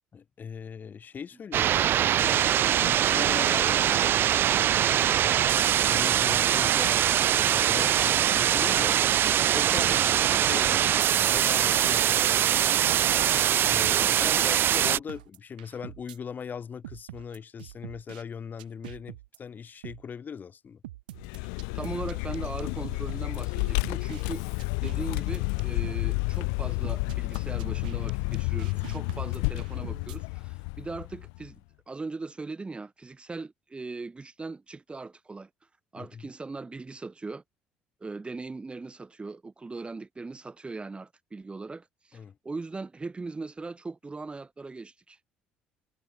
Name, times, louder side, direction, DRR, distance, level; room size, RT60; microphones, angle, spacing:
voice 1, 0.1-4.5 5.0-5.4 5.7-9.0 9.5-12.8 13.6-20.8 36.0-36.3 42.1-42.4, left 6 dB, 40° left, 7.5 m, -40 dB
sound 1, 1.5-15.0, right 11 dB, 50° right, 0.5 m, -23 dB
sound 2, 11.8-14.0 14.3-14.4 14.8-16.2 16.8-18.2 18.6-19.4 19.8-20.0 20.8-24.2 24.6-26.0 26.3-26.4 26.8-30.2, right 15 dB, 85° right, 1.6 m, -44 dB
voice 2, 13.9-14.4 21.7-31.6 31.9-35.5 35.9-37.4 38.0-45.2, right 3 dB, 25° right, 3.8 m, -39 dB
Vehicle, 21.2-31.5, left 40 dB or more, 75° left, 0.9 m, -31 dB
hypercardioid pair, 60°, 5 cm